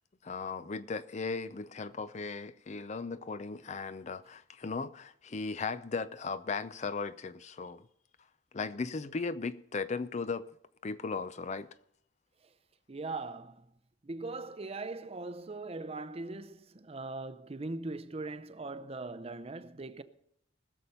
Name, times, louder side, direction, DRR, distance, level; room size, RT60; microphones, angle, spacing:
voice 1, 0.2-7.8 8.5-10.5 10.8-11.7, left 4 dB, 35° left, 0.5 m, -37 dB
voice 2, 12.9-13.6 14.0-20.0, right 3 dB, 30° right, 0.6 m, -40 dB
20.0 x 6.8 x 5.7 m
head